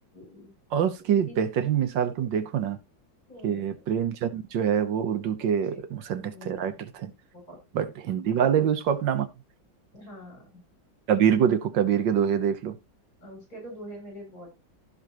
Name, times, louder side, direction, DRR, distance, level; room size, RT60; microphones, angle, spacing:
voice 1, 0.1-0.5 1.3-1.4 3.3-3.8 6.2-6.7 7.3-7.6 8.4-8.6 9.9-10.6 13.2-14.5, equal, 55° left, 8.3 m, -44 dB
voice 2, 0.7-2.8 3.4-7.1 7.7-9.3 11.1-12.8, right 8 dB, 80° right, 1.7 m, -25 dB
16.0 x 5.7 x 3.0 m
omnidirectional pair, 2.0 m